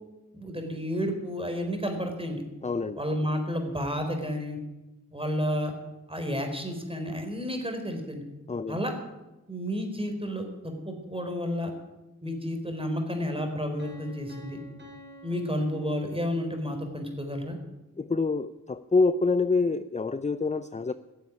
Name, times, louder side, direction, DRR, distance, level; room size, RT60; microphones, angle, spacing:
voice 1, 0.3-2.4 3.0-4.6 5.1-5.7 6.1-8.2 8.7-8.9 9.5-11.7 12.2-14.6 15.2-17.6, equal, 15° right, 4 dB, 4.2 m, -31 dB
voice 2, 2.6-3.0 8.5-8.8 18.0-20.9, left 3 dB, 20° left, 12 dB, 0.5 m, -26 dB
Piano, 13.8-16.6, equal, 35° right, 5.0 m, -50 dB
16.0 x 7.4 x 9.5 m, 1.1 s
cardioid pair, 40°, 32 cm